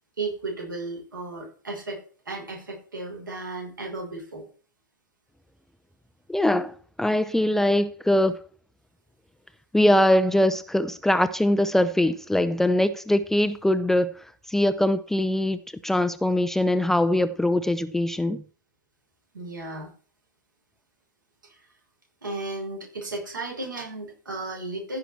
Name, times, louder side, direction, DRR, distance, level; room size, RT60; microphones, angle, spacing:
voice 1, 0.2-4.4 19.3-19.9 21.4-21.6 22.2-25.0, right 2 dB, 80° right, 5.6 m, -34 dB
voice 2, 6.3-8.4 9.7-14.1 14.5-18.4, left 1 dB, 5° left, 0.5 m, -22 dB
15.0 x 6.0 x 4.4 m
figure-of-eight pair, 100°, 10 cm